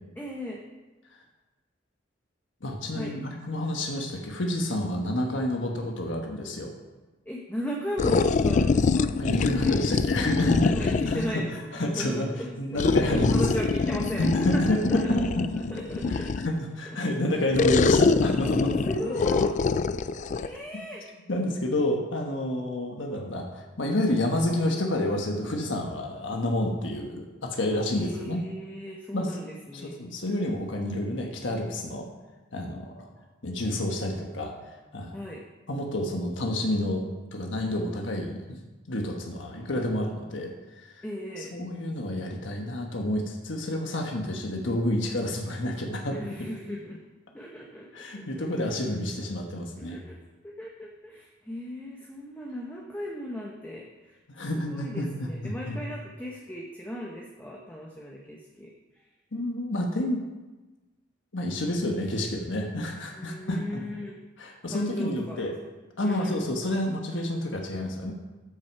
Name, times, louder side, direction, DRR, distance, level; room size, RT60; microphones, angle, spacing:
voice 1, 0.2-0.6 2.9-3.2 7.3-9.9 10.7-12.8 13.1-15.2 15.7-16.3 18.8-19.5 20.3-21.0 27.9-30.0 35.1-35.4 41.0-41.5 46.1-47.0 47.3-48.7 49.8-50.2 50.4-54.2 54.5-58.7 63.1-64.2 64.7-65.4 66.0-66.4, equal, 10° left, -3 dB, 1.0 m, -36 dB
voice 2, 2.6-6.7 9.2-11.4 11.7-12.3 12.6-13.6 14.2-15.4 16.1-18.8 21.3-28.4 29.1-29.3 29.7-32.1 32.5-33.1 33.4-34.5 34.9-35.2 35.7-37.0 37.3-38.6 38.9-40.5 40.9-41.0 41.4-46.2 47.9-50.0 54.3-55.8 59.3-60.2 61.3-63.8 64.4-65.5 66.0-68.1, left 1 dB, 75° left, 2 dB, 1.3 m, -29 dB
sound 1, 8.0-11.3 12.8-16.6 17.5-20.5, left 4 dB, 40° left, 0.3 m, -24 dB
13.0 x 6.0 x 4.7 m, 1.2 s
head